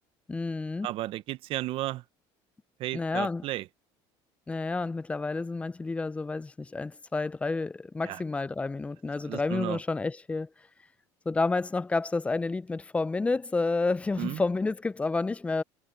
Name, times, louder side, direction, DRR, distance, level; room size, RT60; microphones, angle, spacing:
voice 1, 0.3-0.9 2.9-3.4 4.5-10.5 11.3-15.6, left 3 dB, 10° left, 0.3 m, -30 dB
voice 2, 0.8-2.0 2.8-3.7 8.0-8.2 9.3-9.8 14.2-14.4, right 15 dB, 60° right, 0.7 m, -33 dB
cardioid pair, 110°, 10 cm